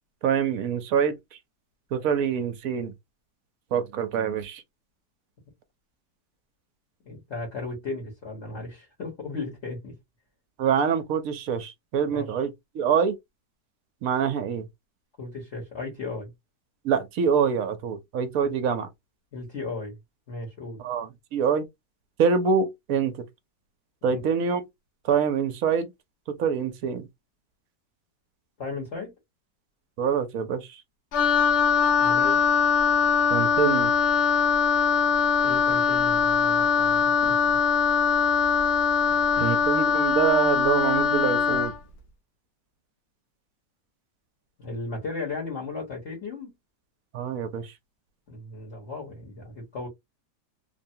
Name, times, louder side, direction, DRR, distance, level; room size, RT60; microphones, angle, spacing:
voice 1, 0.2-1.1 1.9-2.9 3.7-4.6 10.6-12.5 12.7-13.1 14.0-14.7 16.8-18.9 20.8-21.7 22.2-23.1 24.0-24.6 25.0-25.9 26.3-27.1 30.0-30.8 33.3-33.9 39.4-41.7 47.1-47.7, right 7 dB, 65° right, 1.0 m, -25 dB
voice 2, 7.0-9.9 12.1-12.3 15.2-16.3 18.4-18.5 19.3-20.0 20.3-20.8 24.1-24.2 28.6-29.1 32.0-32.4 35.4-37.4 39.1-39.6 44.6-46.5 48.3-49.9, left 3 dB, 45° left, 1.4 m, -36 dB
Wind instrument woodwind instrument, 31.1-41.8, left 6 dB, 75° left, 0.6 m, -22 dB
3.3 x 2.2 x 2.7 m
omnidirectional pair, 1.8 m